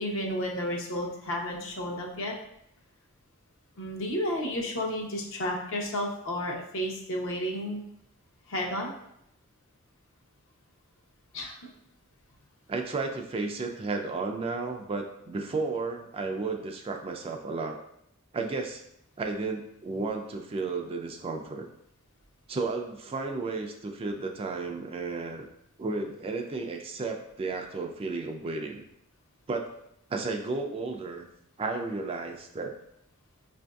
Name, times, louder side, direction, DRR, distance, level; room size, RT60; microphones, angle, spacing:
voice 1, 0.0-2.3 3.8-7.8 8.5-8.9 11.3-11.7, equal, 65° left, 1 dB, 0.7 m, -32 dB
voice 2, 12.7-17.8 18.3-18.8 19.2-21.7 22.5-25.5 25.8-28.8 29.5-29.7 30.1-31.3 31.6-32.7, right 3 dB, 25° right, 3 dB, 0.3 m, -33 dB
5.1 x 2.5 x 2.3 m, 0.76 s
head